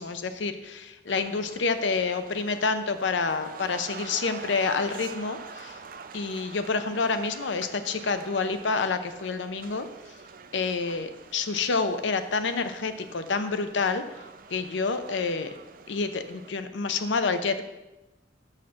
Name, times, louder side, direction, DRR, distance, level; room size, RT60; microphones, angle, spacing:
voice 1, 0.0-5.8 6.1-9.9 10.5-14.1 14.5-15.5 15.9-17.6, left 4 dB, 80° left, 10 dB, 0.6 m, -28 dB
sound 1, 1.1-16.5, right 5 dB, 50° right, 0.5 m, -45 dB
6.5 x 6.3 x 5.7 m, 1.0 s
head